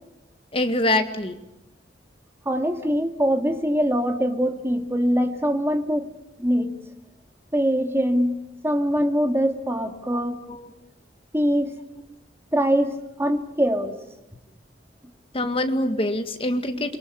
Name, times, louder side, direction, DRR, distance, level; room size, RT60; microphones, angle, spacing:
voice 1, 0.5-1.4 10.1-10.2 10.5-10.7 15.3-17.0, left 1 dB, 30° left, 7 dB, 2.0 m, -24 dB
voice 2, 2.5-6.1 6.4-6.7 7.5-8.4 8.6-10.4 11.3-11.7 12.5-12.9 13.2-14.0, equal, 15° right, 5 dB, 2.2 m, -23 dB
29.0 x 23.0 x 7.1 m, 0.90 s
head